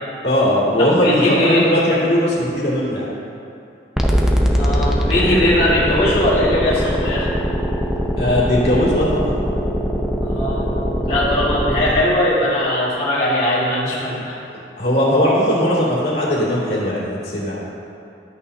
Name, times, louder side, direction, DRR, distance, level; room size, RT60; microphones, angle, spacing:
voice 1, 0.2-3.1 8.2-9.3 14.5-17.6, equal, 60° left, -7 dB, 2.4 m, -18 dB
voice 2, 0.8-1.7 4.6-7.3 10.2-10.7 11.1-14.4, left 1 dB, 35° left, -11 dB, 2.0 m, -19 dB
sound 1, 4.0-12.0, equal, 5° right, 0.6 m, -21 dB
12.5 x 8.9 x 2.7 m, 2.6 s
head